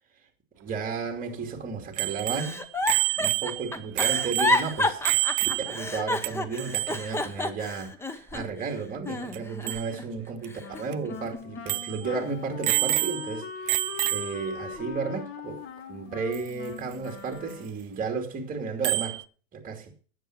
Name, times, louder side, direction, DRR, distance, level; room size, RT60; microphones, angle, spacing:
voice 1, 0.6-2.6 3.2-15.6 15.9-19.2 19.5-19.9, right 5 dB, 20° right, 2.7 m, -33 dB
Bicycle bell, 2.0-5.9 6.2-6.3 6.6-7.1 9.3-9.4 9.7-9.9 10.4-10.5 10.9-11.0 11.7-12.0 12.6-13.4 13.7-14.5 16.3-16.4 18.8-19.2, right 21 dB, 45° right, 0.5 m, -28 dB
Giggle, 2.3-8.7 9.1-10.0 10.5-11.6 12.1-12.5, left 2 dB, 5° left, 0.7 m, -30 dB
Wind instrument woodwind instrument, 10.6-17.9, left 6 dB, 35° left, 1.3 m, -40 dB
10.0 x 7.9 x 6.0 m
supercardioid pair, 130°, 38 cm